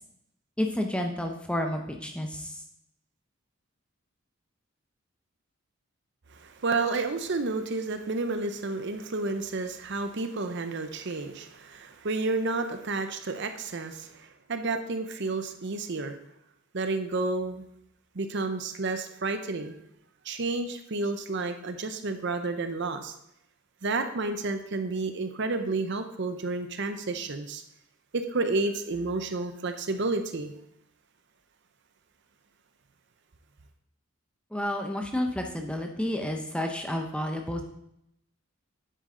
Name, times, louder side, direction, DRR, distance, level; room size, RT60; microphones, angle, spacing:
voice 1, 0.6-2.5 34.5-37.6, left 1 dB, 5° left, 3 dB, 0.8 m, -30 dB
voice 2, 6.3-16.2 16.7-17.6 18.1-19.8 20.2-23.1 23.8-27.6 28.1-30.5, right 3 dB, 55° right, 8 dB, 0.7 m, -31 dB
9.3 x 8.1 x 3.8 m, 0.78 s
head